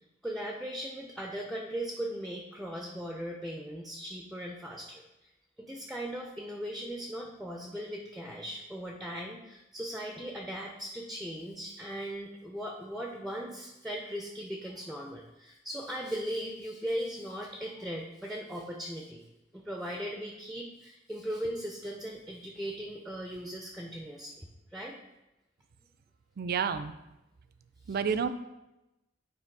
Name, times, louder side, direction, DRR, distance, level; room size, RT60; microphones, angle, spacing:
voice 1, 0.2-5.0 5.6-19.2 19.5-25.0 27.9-28.0, equal, ahead, 0 dB, 0.6 m, -38 dB
voice 2, 26.4-26.9 27.9-28.3, right 6 dB, 50° right, 11 dB, 0.4 m, -29 dB
9.1 x 3.2 x 4.6 m, 0.96 s
head